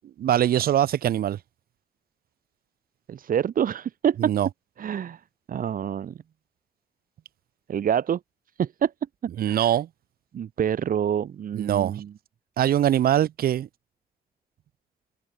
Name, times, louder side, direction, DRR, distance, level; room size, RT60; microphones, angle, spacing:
voice 1, 0.2-1.4 4.2-4.5 9.4-9.9 11.5-12.0 12.6-13.7, right 11 dB, 85° right, 1.3 m, -22 dB
voice 2, 3.1-4.3 4.8-5.2 5.5-6.2 7.7-8.2 8.6-8.9 9.4-9.7 10.3-12.1, right 9 dB, 70° right, 4.9 m, -26 dB
wide cardioid pair, 130°, 15 cm